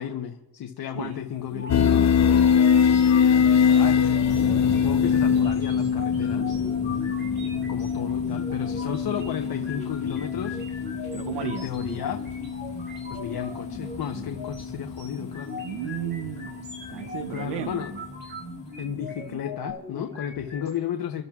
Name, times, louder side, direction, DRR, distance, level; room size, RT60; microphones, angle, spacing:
voice 1, 0.0-6.6 7.7-10.6 11.4-12.2 13.1-15.6 17.3-17.9 18.8-21.2, left 9 dB, 65° left, 4 dB, 0.9 m, -34 dB
sound 1, 1.1-19.3 19.7-19.8, left 2 dB, 15° left, 1.7 m, -41 dB
sound 2, 1.5-20.7, left 2 dB, 25° right, 5.3 m, -40 dB
sound 3, 1.7-16.8, left 7 dB, 45° left, 0.6 m, -24 dB
voice 2, 3.2-3.6 7.2-7.6 11.1-11.7 15.6-16.5 16.9-17.9, right 11 dB, 85° right, 11 dB, 0.7 m, -34 dB
29.5 x 12.0 x 2.4 m, 0.96 s
wide cardioid pair, 155°, 40 cm